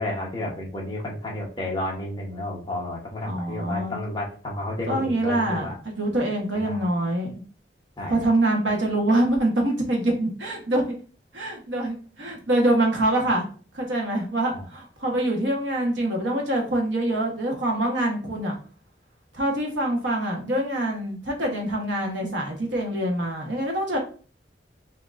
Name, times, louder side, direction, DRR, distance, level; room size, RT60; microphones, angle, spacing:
voice 1, 0.0-5.7 6.6-6.8 8.0-8.2 14.5-14.6, left 1 dB, 25° left, -2 dB, 1.1 m, -31 dB
voice 2, 3.2-3.9 4.9-7.3 8.1-11.0 11.3-13.5 13.7-18.5 19.3-24.0, right 1 dB, 85° right, 0 dB, 1.3 m, -25 dB
5.8 x 2.9 x 2.6 m, 0.40 s
head